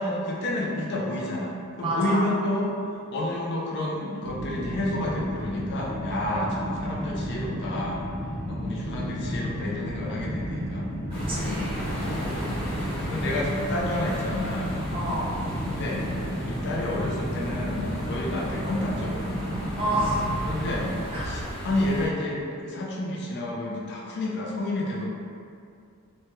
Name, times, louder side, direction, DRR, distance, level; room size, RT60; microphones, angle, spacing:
voice 1, 0.0-2.7 3.1-8.0 8.5-10.9 11.4-12.0 12.8-14.8 15.7-16.0 16.5-19.4 20.4-20.9 21.2-25.1, left 1 dB, 55° left, -4 dB, 0.5 m, -30 dB
voice 2, 1.8-2.3 8.4-8.8 11.1-11.8 14.9-15.3 19.8-20.3 21.1-21.3, right 1 dB, 25° right, -7 dB, 0.6 m, -29 dB
sound 1, 4.2-20.9, equal, 75° left, 1.2 m, -32 dB
Bass guitar, 8.1-17.7, equal, 25° left, 0.9 m, -44 dB
sound 2, 11.1-22.1, equal, 5° left, 1.3 m, -35 dB
3.1 x 2.2 x 2.8 m, 2.3 s
head